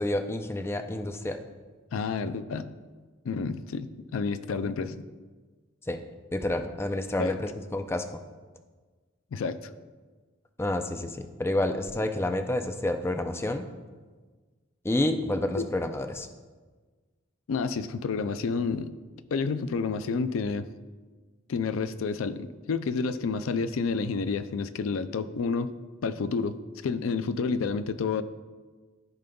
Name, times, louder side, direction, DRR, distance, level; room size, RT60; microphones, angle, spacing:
voice 1, 0.0-1.4 5.9-6.0 6.3-8.0 10.6-13.7 14.8-16.3, left 1 dB, 10° left, 7 dB, 0.4 m, -29 dB
voice 2, 1.9-2.7 3.2-5.1 7.2-7.4 9.3-9.7 15.6-15.7 17.5-18.9 19.3-20.7 21.5-25.7 26.0-26.6 26.8-28.2, left 5 dB, 90° left, 12 dB, 0.4 m, -29 dB
14.5 x 5.2 x 2.3 m, 1.4 s
head